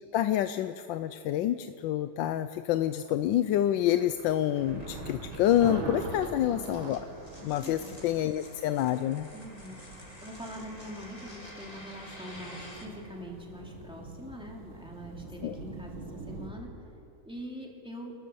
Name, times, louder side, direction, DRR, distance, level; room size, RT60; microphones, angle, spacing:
voice 1, 0.1-7.0 7.4-9.3 15.4-15.6, left 12 dB, 75° left, 11 dB, 1.3 m, -27 dB
sound 1, 2.1-12.8, left 1 dB, 20° left, 2.8 m, -51 dB
sound 2, 3.7-16.5, right 3 dB, 90° right, 2.6 m, -43 dB
voice 2, 7.4-7.9 9.3-16.7 17.2-18.1, equal, 5° right, -1 dB, 2.8 m, -44 dB
29.0 x 13.0 x 7.0 m, 3.0 s
omnidirectional pair, 2.1 m